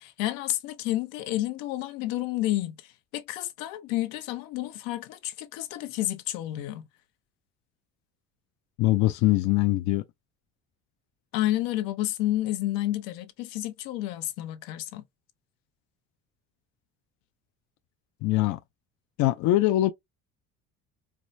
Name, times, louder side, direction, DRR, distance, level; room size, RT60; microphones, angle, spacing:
voice 1, 0.0-6.9 11.3-15.0, left 15 dB, 85° left, 0.8 m, -30 dB
voice 2, 8.8-10.0 18.2-18.6 19.2-19.9, left 16 dB, 60° left, 0.5 m, -22 dB
4.7 x 2.0 x 2.6 m
cardioid pair, 155°, 33 cm